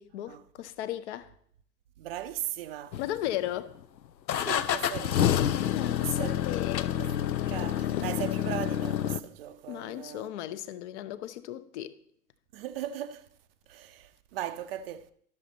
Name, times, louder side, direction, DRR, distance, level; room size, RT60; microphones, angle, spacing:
voice 1, 0.0-1.3 3.0-3.7 5.7-7.0 9.7-12.0, left 13 dB, 45° left, 0.7 m, -36 dB
voice 2, 2.0-3.0 4.4-5.4 6.0-6.4 7.3-10.3 12.5-13.3 13.7-15.1, right 11 dB, 40° right, 0.5 m, -38 dB
sound 1, 2.9-3.6 4.3-9.2, left 10 dB, 90° left, 0.6 m, -28 dB
12.0 x 6.6 x 4.0 m
hypercardioid pair, 115°, 50 cm